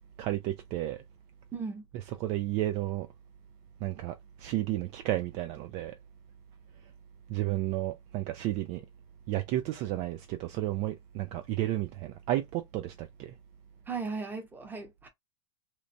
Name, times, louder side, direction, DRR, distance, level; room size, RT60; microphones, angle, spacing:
voice 1, 0.2-1.0 1.9-3.1 3.8-6.0 7.3-8.9 9.3-13.3, right 14 dB, 45° right, 0.4 m, -32 dB
voice 2, 1.5-1.8 13.9-15.1, right 4 dB, 10° right, 0.9 m, -36 dB
2.9 x 2.1 x 2.6 m
hypercardioid pair, 115°, 16 cm